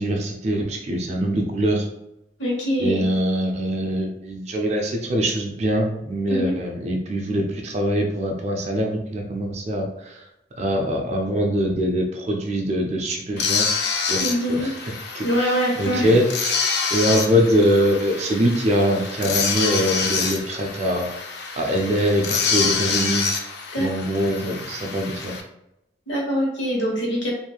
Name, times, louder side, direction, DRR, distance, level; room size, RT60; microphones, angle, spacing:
voice 1, 0.0-1.8 2.8-10.2 10.6-13.7 14.1-14.2 14.5-14.7 15.1-16.6 16.9-21.1 21.6-23.3 23.8-25.3, equal, 40° right, 2 dB, 0.4 m, -23 dB
voice 2, 2.4-3.0 6.3-6.6 14.2-14.7 15.2-16.2 23.7-23.9 26.1-27.3, equal, 85° left, -2 dB, 1.1 m, -23 dB
sound 1, 13.4-25.4, left 5 dB, 65° left, 0.4 m, -27 dB
3.0 x 2.6 x 2.3 m, 0.84 s
head